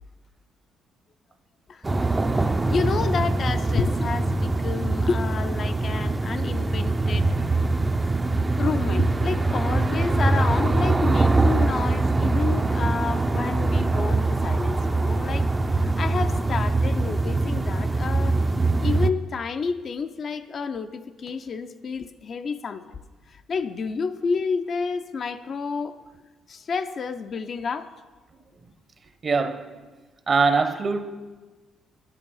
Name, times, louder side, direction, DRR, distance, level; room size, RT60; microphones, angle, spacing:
sound 1, 1.8-19.1, right 2 dB, 15° right, 0.5 m, -23 dB
voice 1, 2.4-7.3 8.6-15.5 15.7-18.4 18.8-23.0 23.3-26.0 26.5-27.9, left 5 dB, 45° left, 0.5 m, -30 dB
voice 2, 29.2-29.7 30.3-31.0, right 4 dB, 35° right, 0.8 m, -22 dB
9.8 x 8.4 x 5.5 m
cardioid pair, 105°, 0 cm